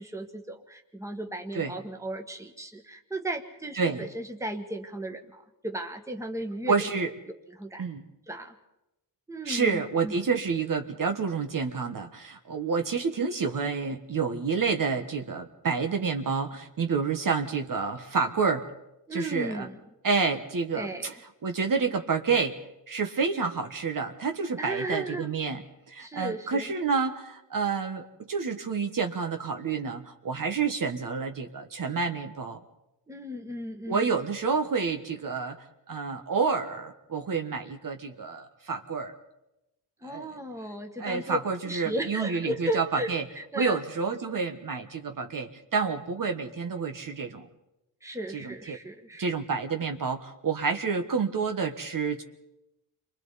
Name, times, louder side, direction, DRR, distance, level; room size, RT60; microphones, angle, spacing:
voice 1, 0.0-6.9 7.5-7.9 8.3-8.6 9.3-10.1 19.1-19.8 20.7-21.1 24.6-25.3 26.0-26.7 33.1-34.2 40.0-41.4 41.6-43.8 48.0-49.4, right 1 dB, 5° right, 4 dB, 1.6 m, -35 dB
voice 2, 3.7-4.1 6.7-7.1 7.8-8.1 9.4-18.7 19.1-19.7 20.0-21.1 21.4-22.6 22.9-32.6 33.9-35.6 35.9-39.1 40.0-40.4 41.0-43.2 43.6-47.5 48.3-48.8 49.2-52.2, right 5 dB, 50° right, 5 dB, 1.3 m, -29 dB
29.5 x 24.0 x 4.2 m, 0.94 s
cardioid pair, 105°, 43 cm